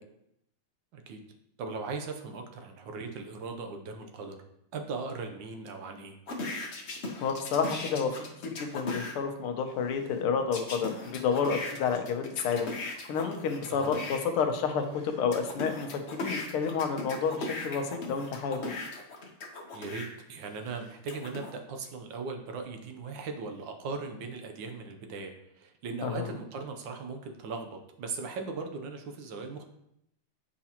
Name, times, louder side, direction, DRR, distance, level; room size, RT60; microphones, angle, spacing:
voice 1, 1.6-4.4 4.7-6.1 13.7-13.9 19.7-29.6, right 4 dB, 65° right, 5 dB, 1.3 m, -38 dB
sound 1, 6.3-9.1 10.5-14.2 14.8-20.1 20.7-21.5, left 2 dB, 55° left, 0.7 m, -38 dB
voice 2, 7.2-8.1 8.6-15.9 16.2-18.6 26.0-26.3, left 6 dB, 80° left, 6 dB, 1.7 m, -30 dB
8.3 x 4.9 x 2.9 m, 0.79 s
omnidirectional pair, 2.4 m